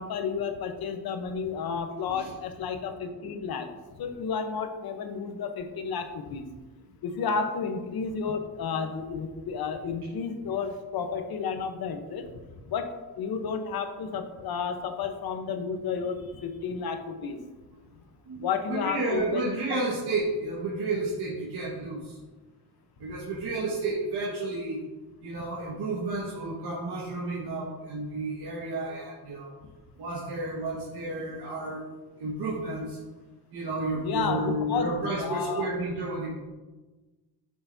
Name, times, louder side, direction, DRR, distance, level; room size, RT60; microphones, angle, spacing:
voice 1, 0.0-3.7 4.0-6.5 7.0-12.3 12.7-12.9 13.2-17.4 18.4-19.5 34.0-34.9 35.2-35.7, left 6 dB, 70° left, 6 dB, 1.0 m, -31 dB
voice 2, 18.3-22.2 23.0-24.8 25.2-29.5 30.0-31.9 32.2-33.0 33.5-36.3, right 2 dB, 80° right, -6 dB, 1.7 m, -31 dB
9.0 x 6.9 x 2.7 m, 1.2 s
cardioid pair, 125°, 39 cm